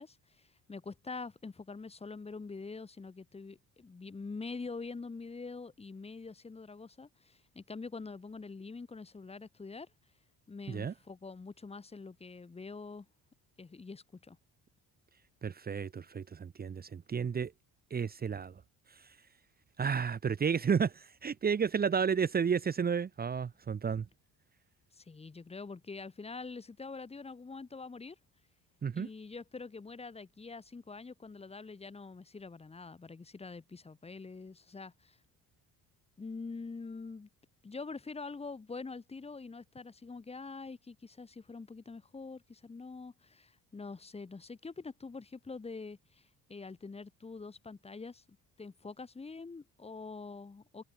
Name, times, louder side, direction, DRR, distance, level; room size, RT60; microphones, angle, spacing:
voice 1, 0.0-9.9 10.5-13.1 13.6-14.4 24.9-28.2 28.9-35.2 36.2-37.3 37.6-48.2 48.6-50.8, left 4 dB, 15° left, 2.9 m, -45 dB
voice 2, 15.4-17.5 17.9-18.5 18.9-19.1 19.8-24.0 28.8-29.1, right 6 dB, 25° right, 1.5 m, -32 dB
open air
cardioid pair, 170°, 37 cm